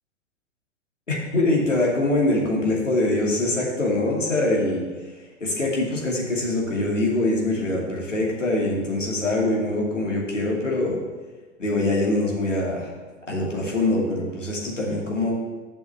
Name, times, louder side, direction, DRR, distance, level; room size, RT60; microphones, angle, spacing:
voice 1, 1.1-4.8 5.4-11.0 11.6-12.9 13.3-15.3, left 2 dB, 90° left, -3 dB, 2.6 m, -23 dB
7.6 x 6.2 x 7.0 m, 1.3 s
figure-of-eight pair, 105°, 36 cm